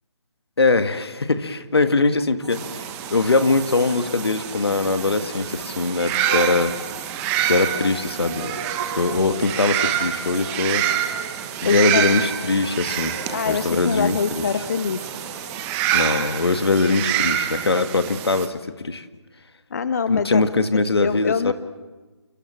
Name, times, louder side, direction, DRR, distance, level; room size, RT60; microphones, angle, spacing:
voice 1, 0.6-2.8 3.1-6.7 7.4-8.6 9.0-10.8 11.6-13.2 13.5-14.4 15.9-19.1 20.1-21.5, left 3 dB, 65° left, 10 dB, 1.8 m, -21 dB
sound 1, 2.4-16.2, right 2 dB, 80° right, 2.8 m, -41 dB
sound 2, 2.5-18.5, right 11 dB, 15° right, 1.1 m, -27 dB
sound 3, 6.3-15.4, right 3 dB, 60° right, 3.5 m, -39 dB
voice 2, 11.6-12.1 13.3-15.0 19.7-20.4 21.0-21.5, left 6 dB, 40° left, 13 dB, 0.8 m, -24 dB
29.0 x 24.0 x 7.6 m, 1.2 s
figure-of-eight pair, 150°, 14 cm